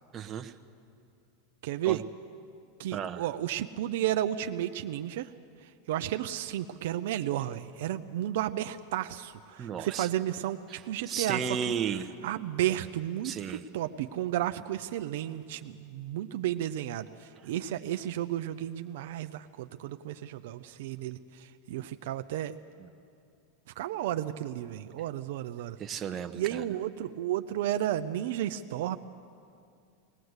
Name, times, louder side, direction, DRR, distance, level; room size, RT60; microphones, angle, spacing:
voice 1, 0.1-0.5 1.9-2.0 2.9-3.3 9.6-10.1 10.7-10.8 11.1-12.1 13.2-13.6 22.8-22.9 25.8-26.7, right 7 dB, 30° right, 8 dB, 1.0 m, -34 dB
voice 2, 1.6-2.0 2.8-5.3 5.9-11.4 12.2-22.6 23.8-25.8 26.4-29.0, right 12 dB, 75° right, 8 dB, 0.6 m, -33 dB
19.5 x 19.0 x 8.1 m, 2.5 s
supercardioid pair, 125°, 0 cm